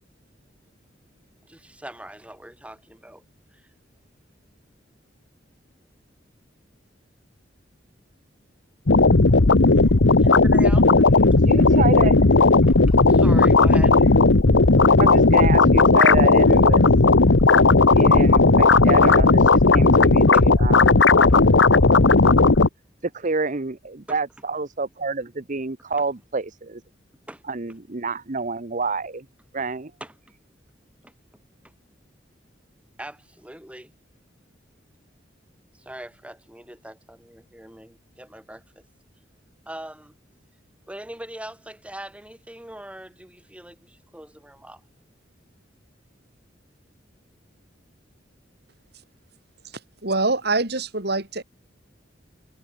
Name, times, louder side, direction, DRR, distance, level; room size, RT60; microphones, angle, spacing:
voice 1, 1.4-3.2 3.5-3.7 9.7-9.9 10.2-11.0 12.7-12.8 13.1-14.0 20.3-20.4 24.1-24.2 27.3-27.4 30.0-30.1 31.0-31.1 31.6-31.7 33.0-33.9 35.8-38.8 39.7-40.2 40.9-44.8, right 1 dB, 5° right, 5.3 m, -41 dB
sound 1, 8.9-22.7, left 3 dB, 80° left, 1.1 m, -15 dB
voice 2, 11.4-12.4 15.0-16.8 17.9-21.0 23.0-26.8 27.5-29.3 29.5-29.9, right 3 dB, 45° right, 1.0 m, -28 dB
voice 3, 50.0-51.4, right 3 dB, 60° right, 4.6 m, -24 dB
head